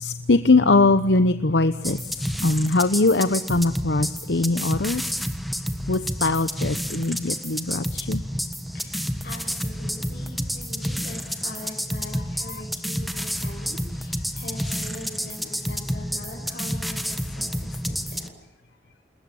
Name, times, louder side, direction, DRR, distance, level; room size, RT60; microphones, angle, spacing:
voice 1, 0.0-2.0 2.4-5.1 5.9-8.2, left 3 dB, 80° left, 11 dB, 1.0 m, -21 dB
sound 1, 1.8-18.3, equal, ahead, 1.5 m, -30 dB
voice 2, 2.2-2.7 7.4-7.5 8.7-19.0, left 1 dB, 55° left, -3 dB, 6.2 m, -42 dB
29.0 x 20.5 x 7.2 m, 0.92 s
head